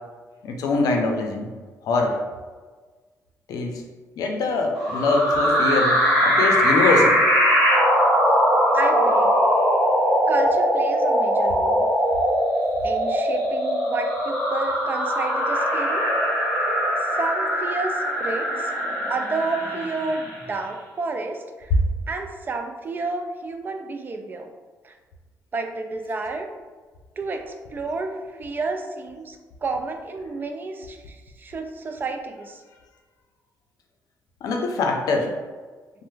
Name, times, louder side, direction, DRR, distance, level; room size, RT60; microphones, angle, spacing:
voice 1, 0.4-1.5 1.8-2.2 3.5-3.8 4.2-7.1 34.4-35.3, left 3 dB, 80° left, 2 dB, 0.5 m, -23 dB
sound 1, 4.7-20.4, equal, 10° left, 1.4 m, -21 dB
voice 2, 8.7-9.4 10.3-11.9 12.8-16.1 17.1-18.7 19.1-21.7 22.1-24.5 24.8-24.9 25.5-26.5 27.2-32.6, right 3 dB, 30° right, 4 dB, 0.3 m, -30 dB
3.2 x 2.0 x 3.1 m, 1.4 s
cardioid pair, 120°, 6 cm